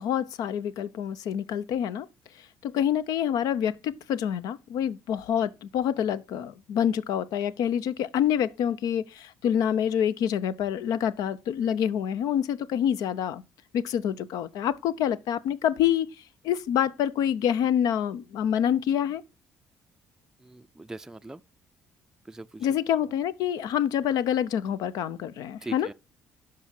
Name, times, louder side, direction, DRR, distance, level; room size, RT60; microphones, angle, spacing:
voice 1, 0.0-2.1 2.6-13.4 13.7-16.1 16.4-19.2 22.6-25.9, left 9 dB, 65° left, 0.6 m, -27 dB
voice 2, 20.4-21.4 22.2-22.7 25.6-25.9, right 2 dB, 10° right, 0.5 m, -41 dB
11.5 x 4.9 x 4.3 m
hypercardioid pair, 50°, 7 cm